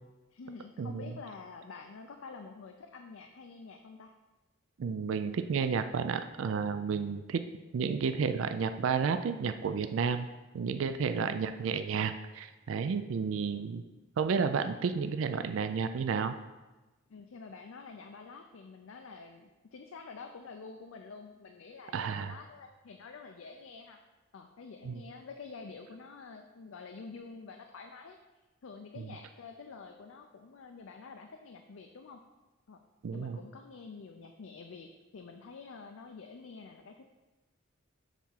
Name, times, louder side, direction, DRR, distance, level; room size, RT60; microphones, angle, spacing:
voice 1, 0.3-4.1 17.1-24.0 24.3-28.2 28.6-32.2 32.7-32.8 33.1-37.0, left 4 dB, 80° left, 4 dB, 0.5 m, -48 dB
voice 2, 4.8-7.4 7.7-10.3 10.5-13.8 14.2-16.3 21.9-22.3 24.8-25.0 33.0-33.4, right 6 dB, 70° right, 10 dB, 0.4 m, -31 dB
7.2 x 3.5 x 5.7 m, 1.1 s
head